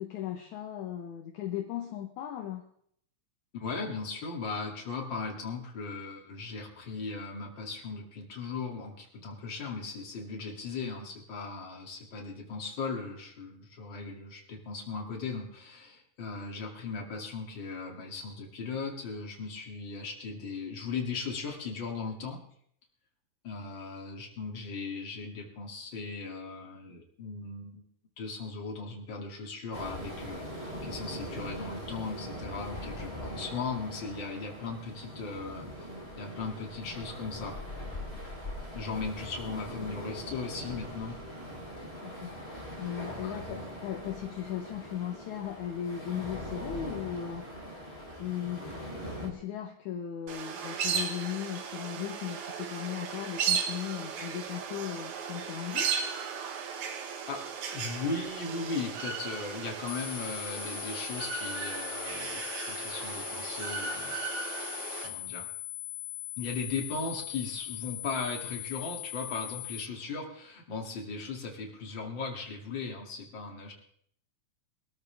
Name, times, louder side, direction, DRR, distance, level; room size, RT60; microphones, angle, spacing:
voice 1, 0.0-2.6 42.0-47.7 48.2-48.8 49.2-55.9, left 10 dB, 70° left, 4 dB, 2.2 m, -37 dB
voice 2, 3.5-22.4 23.4-27.8 28.2-35.9 36.2-37.5 38.7-41.2 43.2-43.6 57.3-57.4 57.7-64.2 65.0-65.4 66.4-73.7, left 4 dB, 35° left, 0 dB, 2.9 m, -38 dB
sound 1, 29.7-49.3, equal, 15° left, 4.4 m, -41 dB
sound 2, 50.3-65.1, right 6 dB, 65° right, 2.6 m, -36 dB
sound 3, 59.9-69.9, left 17 dB, 85° left, 1.5 m, -40 dB
23.0 x 13.0 x 3.5 m, 0.65 s
omnidirectional pair, 3.8 m